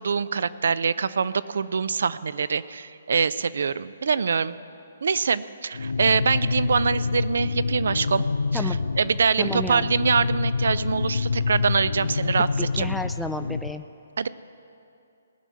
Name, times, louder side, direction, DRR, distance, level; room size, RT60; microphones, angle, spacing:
voice 1, 0.0-4.5 5.0-8.2 8.5-12.9 14.2-14.3, right 5 dB, 70° right, 17 dB, 0.5 m, -24 dB
sound 1, 5.7-13.7, left 4 dB, 85° left, 0.4 m, -27 dB
voice 2, 9.4-9.9 12.6-13.8, left 1 dB, ahead, 7 dB, 0.4 m, -31 dB
18.5 x 6.2 x 8.2 m, 2.6 s
hypercardioid pair, 145°, 0 cm